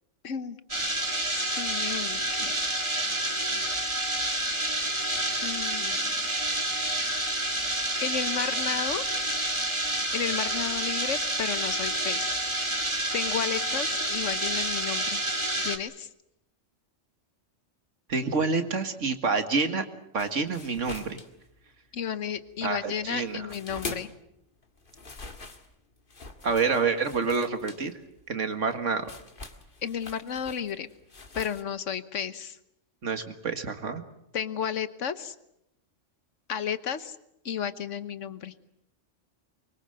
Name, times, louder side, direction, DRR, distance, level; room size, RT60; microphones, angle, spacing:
voice 1, 0.2-0.6 1.3-2.5 5.4-6.3 8.0-9.0 10.1-12.4 13.1-15.2 15.6-16.1 21.9-24.1 29.8-30.9 31.3-32.6 34.3-35.3 36.5-37.2 37.4-38.5, left 8 dB, 85° left, 13 dB, 1.5 m, -33 dB
sound 1, 0.7-15.8, right 1 dB, 25° right, 2.1 m, -29 dB
voice 2, 18.1-19.8 20.1-21.2 22.6-23.5 26.4-27.9 28.3-29.1 33.0-34.0, right 4 dB, 85° right, 8 dB, 2.2 m, -27 dB
sound 2, 20.2-22.0 22.2-24.3 24.6-31.6, left 3 dB, 45° left, 2.0 m, -43 dB
24.0 x 22.5 x 7.8 m, 0.82 s
omnidirectional pair, 1.2 m